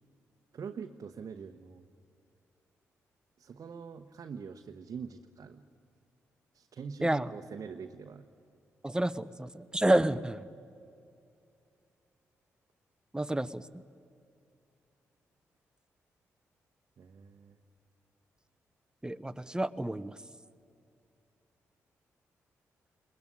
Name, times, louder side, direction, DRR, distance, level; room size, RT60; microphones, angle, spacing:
voice 1, 0.5-1.8 3.4-5.6 6.5-8.3 17.0-17.6, right 6 dB, 60° right, 4 dB, 1.0 m, -44 dB
voice 2, 7.0-7.3 8.8-10.5 13.1-13.8 19.0-20.2, right 1 dB, 10° right, 15 dB, 0.9 m, -29 dB
21.5 x 20.5 x 10.0 m, 2.5 s
hypercardioid pair, 40°, 7 cm